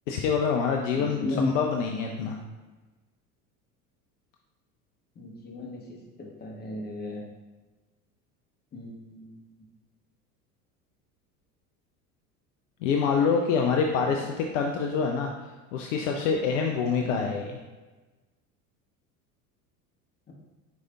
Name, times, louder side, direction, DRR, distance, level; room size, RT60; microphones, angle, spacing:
voice 1, 0.1-2.4 12.8-17.6, left 5 dB, 55° left, 2 dB, 0.5 m, -26 dB
voice 2, 0.9-1.5 5.2-5.8 6.2-7.2 8.7-9.3 17.0-17.3, left 2 dB, 20° left, 0 dB, 0.9 m, -34 dB
4.8 x 4.1 x 2.3 m, 1.2 s
figure-of-eight pair, 70°, 47 cm